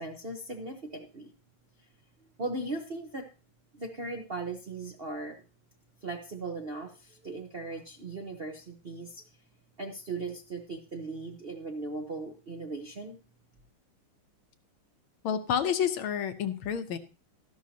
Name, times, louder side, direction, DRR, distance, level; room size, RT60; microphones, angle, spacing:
voice 1, 0.0-1.3 2.4-3.3 3.7-5.4 6.0-9.2 9.8-13.2, right 2 dB, 40° right, 1 dB, 0.8 m, -38 dB
voice 2, 15.2-17.0, left 8 dB, 75° left, 8 dB, 1.7 m, -29 dB
13.0 x 11.5 x 2.8 m, 0.33 s
omnidirectional pair, 2.4 m